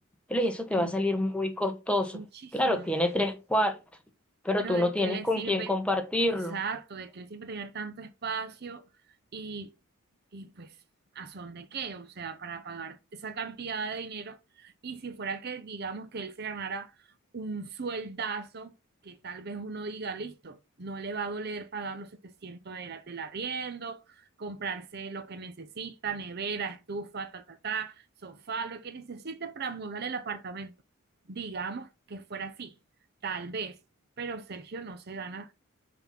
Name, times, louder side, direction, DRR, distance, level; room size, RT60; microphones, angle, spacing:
voice 1, 0.3-2.2 2.5-3.8 4.4-6.6, left 1 dB, 5° left, 1.2 m, -27 dB
voice 2, 2.1-2.9 4.6-5.7 6.2-8.9 9.3-9.7 10.3-10.8 11.1-17.1 17.3-18.7 19.0-30.7 31.3-32.7 33.2-33.8 34.2-35.5, right 5 dB, 50° right, 0.6 m, -37 dB
5.8 x 5.4 x 5.8 m
head